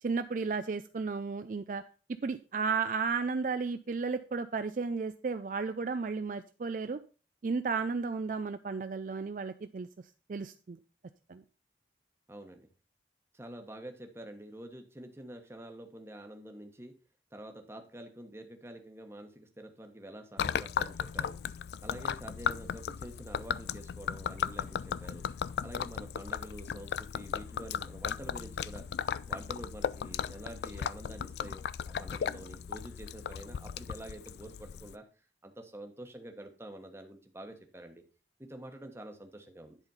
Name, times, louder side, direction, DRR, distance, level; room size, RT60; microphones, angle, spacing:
voice 1, 0.0-1.8 2.2-7.0 7.4-9.9 10.3-10.8 11.3-11.4, right 4 dB, 45° right, 10 dB, 0.4 m, -33 dB
voice 2, 12.3-12.6 13.3-16.9 17.3-21.4 21.8-25.3 25.6-28.8 29.3-35.0 35.4-38.0 38.4-39.8, right 1 dB, 15° right, 5 dB, 1.1 m, -47 dB
Gurgling / Liquid, 20.4-35.0, left 7 dB, 65° left, 0.3 m, -36 dB
10.5 x 4.2 x 5.5 m, 0.36 s
head